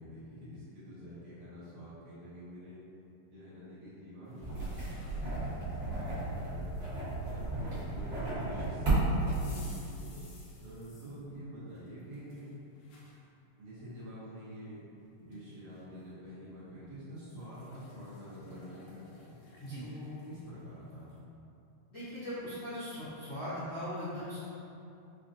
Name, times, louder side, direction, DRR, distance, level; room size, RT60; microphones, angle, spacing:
voice 1, 0.0-2.8 3.3-6.7 7.2-10.2 10.6-12.5 13.6-14.8 15.2-19.4 19.8-21.1, equal, 75° right, -11 dB, 1.4 m, -47 dB
sound 1, 4.3-5.4 5.9-7.5 9.3-11.2 11.7-13.2 13.8-13.9 14.9-15.0 15.3-15.9 17.2-21.2, left 3 dB, 85° left, 1.5 m, -59 dB
sound 2, 4.4-9.6, right 2 dB, 35° right, 1.1 m, -33 dB
voice 2, 21.9-24.4, equal, 70° left, -17 dB, 1.1 m, -39 dB
5.3 x 2.1 x 2.5 m, 2.7 s
omnidirectional pair, 3.7 m